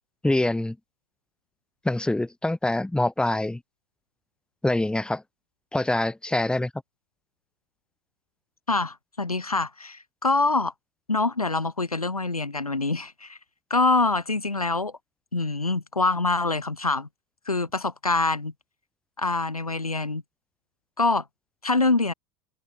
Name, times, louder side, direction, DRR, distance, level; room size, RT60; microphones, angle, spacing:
voice 1, 0.2-0.8 1.8-3.6 4.6-5.2 5.7-6.7, left 1 dB, 5° left, 2.3 m, -25 dB
voice 2, 8.7-10.7 11.1-13.4 13.7-14.9 15.3-17.1 17.5-18.5 19.2-20.2 21.0-21.3 21.6-22.1, left 3 dB, 85° left, 1.8 m, -25 dB
open air
figure-of-eight pair, 80°, 18 cm